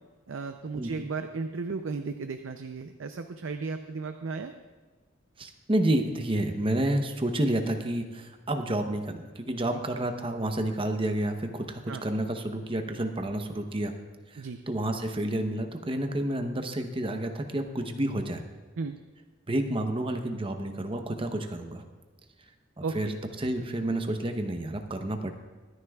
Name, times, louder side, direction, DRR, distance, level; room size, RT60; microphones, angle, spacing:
voice 1, 0.3-4.5 11.9-12.0 14.4-14.6 18.8-19.0 22.8-23.2, right 4 dB, 85° right, 7 dB, 0.5 m, -35 dB
voice 2, 0.8-1.1 5.4-13.9 14.3-18.4 19.5-21.8 22.8-23.1 23.4-25.3, right 1 dB, 30° right, 6 dB, 0.8 m, -30 dB
23.5 x 9.8 x 2.4 m, 1.4 s
head